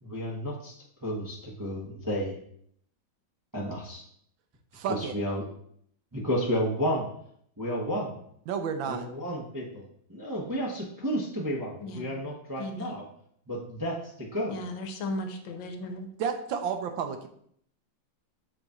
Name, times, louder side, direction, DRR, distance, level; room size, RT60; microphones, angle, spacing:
voice 1, 0.0-0.7 1.0-2.4 3.5-4.0 4.8-5.4 6.1-7.1 7.6-8.2 8.9-9.8 10.1-13.0 13.5-14.6, equal, 20° right, -4 dB, 0.5 m, -32 dB
voice 2, 4.7-5.1 8.5-9.1 16.2-17.3, right 7 dB, 75° right, 6 dB, 1.4 m, -31 dB
voice 3, 11.8-12.2 12.6-12.9 14.5-16.1, left 2 dB, 75° left, 5 dB, 1.5 m, -36 dB
6.7 x 4.0 x 3.6 m, 0.66 s
omnidirectional pair, 2.2 m